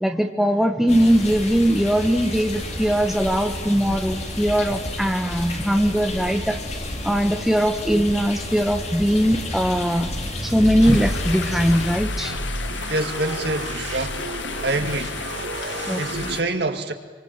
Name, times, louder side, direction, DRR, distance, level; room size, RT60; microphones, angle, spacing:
voice 1, 0.0-6.6 7.0-10.1 10.4-12.3 15.9-16.4, equal, ahead, 5 dB, 1.2 m, -20 dB
sound 1, 0.9-12.0, left 1 dB, 35° left, 3.1 m, -31 dB
sound 2, 9.9-16.4, right 1 dB, 80° right, 2.9 m, -31 dB
sound 3, 10.8-16.4, left 5 dB, 80° left, 2.1 m, -33 dB
voice 2, 12.9-14.2 14.6-15.2 15.8-16.9, right 2 dB, 60° right, 6 dB, 2.4 m, -26 dB
25.5 x 25.5 x 8.9 m, 1.4 s
head